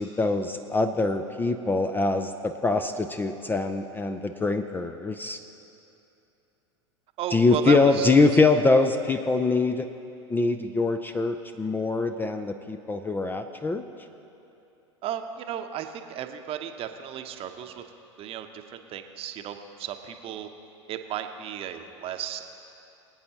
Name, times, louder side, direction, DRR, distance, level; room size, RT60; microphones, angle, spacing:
voice 1, 0.0-5.4 7.3-9.9 10.3-13.8, left 3 dB, 15° left, 8 dB, 0.4 m, -23 dB
voice 2, 7.2-8.1 15.0-17.8 18.2-20.5 20.9-22.4, right 10 dB, 40° right, 6 dB, 0.8 m, -34 dB
23.5 x 8.7 x 2.9 m, 2.8 s
figure-of-eight pair, 85°, 15 cm